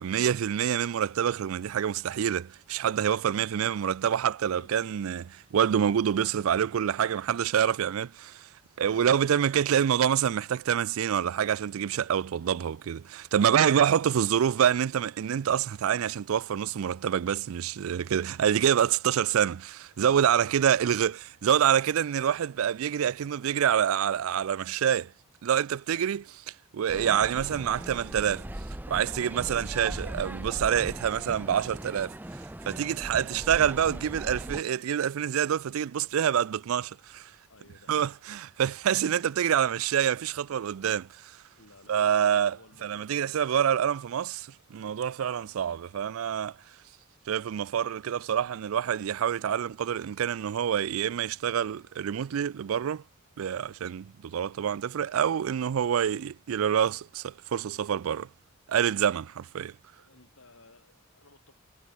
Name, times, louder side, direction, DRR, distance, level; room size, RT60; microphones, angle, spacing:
voice 1, 0.0-8.5 8.8-25.1 25.4-26.2 26.7-28.5 28.9-32.2 32.7-37.3 37.9-41.3 41.9-42.6 42.8-46.5 47.3-53.0 53.4-58.3 58.7-59.7, right 9 dB, 75° right, 0.4 m, -26 dB
voice 2, 19.9-20.7 25.9-26.2 37.5-38.1 39.1-39.5 41.5-43.9 60.0-61.5, left 2 dB, 70° left, 4.6 m, -57 dB
sound 1, 26.9-34.6, right 1 dB, 10° right, 0.6 m, -39 dB
head